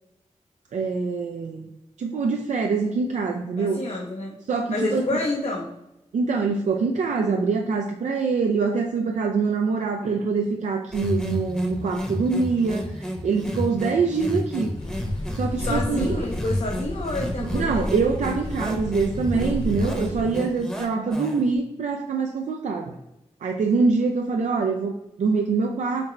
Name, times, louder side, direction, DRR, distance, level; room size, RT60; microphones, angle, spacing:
voice 1, 0.7-1.7 2.0-3.8 4.5-5.1 6.1-14.7 15.3-16.2 17.4-22.9 23.4-26.1, right 4 dB, 75° right, 2 dB, 0.4 m, -24 dB
voice 2, 3.6-4.3 4.7-5.7 15.6-17.9, left 2 dB, 55° left, 0 dB, 0.6 m, -28 dB
sound 1, 10.9-21.5, equal, 5° left, 0.8 m, -31 dB
sound 2, 14.8-20.2, left 1 dB, 40° left, 1.0 m, -33 dB
4.0 x 2.1 x 4.4 m, 0.92 s
cardioid pair, 50°, 13 cm